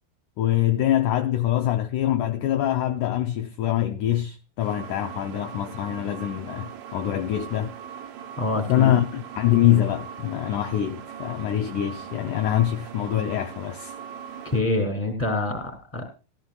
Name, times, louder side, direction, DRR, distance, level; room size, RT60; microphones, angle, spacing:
voice 1, 0.4-7.8 8.7-14.0, left 12 dB, 80° left, 1.8 m, -24 dB
sound 1, 4.6-14.6, right 8 dB, 70° right, 1.8 m, -40 dB
voice 2, 8.4-8.9 14.4-16.1, left 2 dB, 5° left, 2.6 m, -26 dB
16.0 x 14.0 x 2.3 m
omnidirectional pair, 4.5 m